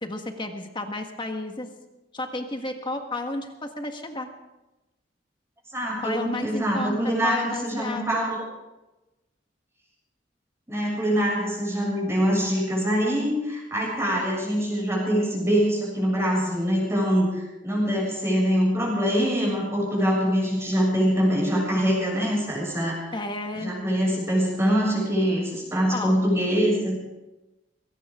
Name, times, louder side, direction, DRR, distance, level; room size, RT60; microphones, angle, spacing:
voice 1, 0.0-1.7 2.1-4.3 6.0-7.0 7.2-8.3 23.1-23.7 25.9-26.1, left 2 dB, 25° left, 5 dB, 1.7 m, -32 dB
voice 2, 5.7-8.4 10.7-23.0 23.6-27.0, equal, 15° right, -3 dB, 7.0 m, -24 dB
21.5 x 17.5 x 3.8 m, 1.0 s
head